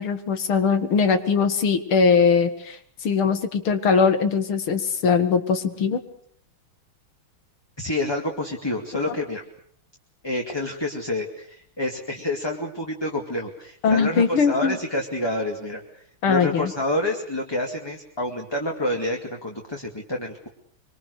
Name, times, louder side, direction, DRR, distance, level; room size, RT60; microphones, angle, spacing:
voice 1, 0.0-6.0 13.8-14.8 16.2-16.7, left 5 dB, 75° left, 9 dB, 2.6 m, -21 dB
voice 2, 7.8-9.4 10.2-20.5, left 1 dB, 10° left, 1 dB, 2.4 m, -28 dB
25.0 x 24.5 x 6.6 m, 0.63 s
omnidirectional pair, 2.4 m